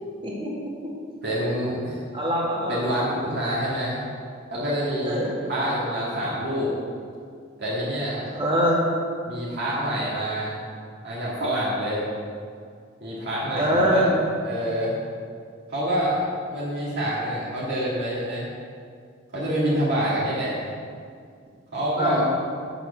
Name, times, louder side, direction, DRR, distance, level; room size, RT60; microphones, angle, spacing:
voice 1, 0.2-0.9 2.1-2.9 5.0-5.3 8.3-8.8 13.5-14.1 22.0-22.2, equal, 25° right, -4 dB, 2.2 m, -24 dB
voice 2, 1.2-2.0 2.7-4.0 4.5-5.2 5.5-6.7 7.6-8.2 9.3-10.6 11.0-12.0 13.0-14.0 14.4-15.0 15.7-16.2 16.5-18.5 19.3-20.6 21.7-22.3, equal, 55° right, -8 dB, 2.4 m, -26 dB
8.1 x 7.0 x 7.0 m, 2.2 s
head